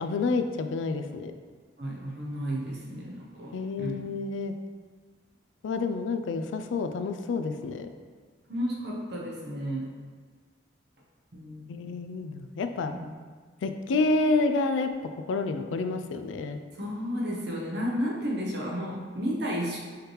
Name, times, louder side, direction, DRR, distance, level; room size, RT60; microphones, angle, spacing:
voice 1, 0.0-1.3 3.5-4.5 5.6-7.9 11.7-12.9 13.6-14.9 15.3-16.6, left 3 dB, 80° left, 8 dB, 0.3 m, -29 dB
voice 2, 1.8-4.0 8.5-9.9 11.3-11.7 12.9-13.1 16.8-19.8, equal, 60° right, -2 dB, 0.9 m, -32 dB
4.9 x 3.2 x 3.1 m, 1.5 s
head